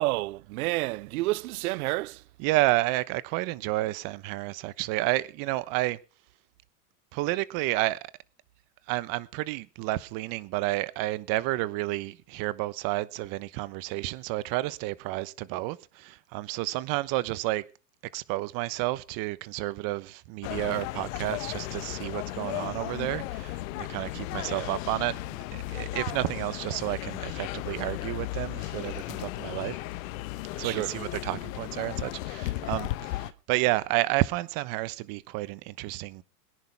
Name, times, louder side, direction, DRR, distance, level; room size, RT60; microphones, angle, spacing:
voice 1, 0.0-2.2 24.5-24.7 30.6-30.9, right 20 dB, 65° right, 0.6 m, -30 dB
voice 2, 2.4-6.0 7.1-8.1 8.9-17.6 18.1-25.2 25.5-29.8 30.5-36.2, right 18 dB, 45° right, 1.1 m, -30 dB
sound 1, 20.4-33.3, left 17 dB, 55° left, 1.1 m, -35 dB
22.5 x 10.5 x 3.5 m
hypercardioid pair, 115°, 47 cm